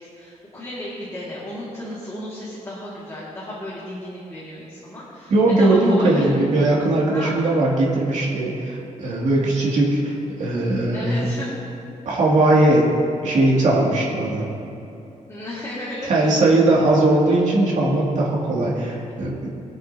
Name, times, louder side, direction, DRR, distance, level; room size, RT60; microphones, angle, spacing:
voice 1, 0.2-6.3 7.1-7.4 9.4-9.7 10.9-11.5 15.3-16.8, left 1 dB, 20° left, -8 dB, 2.1 m, -34 dB
voice 2, 5.3-10.1 10.4-11.3 12.1-12.9 13.2-14.5 16.1-19.5, right 2 dB, 65° right, -5 dB, 2.4 m, -19 dB
22.5 x 7.9 x 2.8 m, 2.8 s
wide cardioid pair, 170°, 13 cm